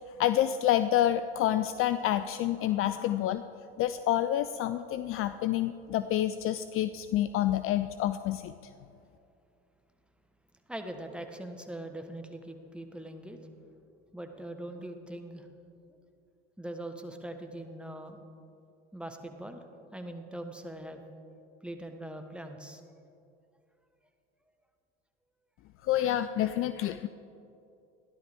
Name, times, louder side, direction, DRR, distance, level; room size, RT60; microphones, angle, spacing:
voice 1, 0.2-3.4 3.8-8.5 25.9-27.1, left 12 dB, 45° left, 12 dB, 0.4 m, -28 dB
voice 2, 10.7-13.4 14.1-15.5 16.6-18.2 18.9-19.6 19.9-21.0 21.6-22.8, right 1 dB, 5° right, 5 dB, 1.1 m, -41 dB
13.5 x 11.0 x 3.5 m, 2.6 s
hypercardioid pair, 75°, 32 cm